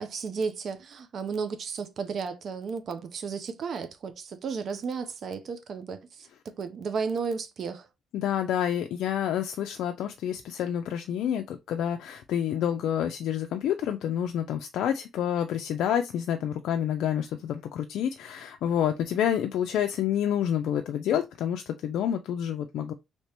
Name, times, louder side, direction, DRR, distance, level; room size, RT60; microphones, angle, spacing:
voice 1, 0.0-6.3 6.6-7.9, right 5 dB, 60° right, 0.6 m, -33 dB
voice 2, 8.1-22.9, left 10 dB, 80° left, 0.3 m, -28 dB
3.3 x 2.9 x 2.9 m
cardioid pair, 90°, 0 cm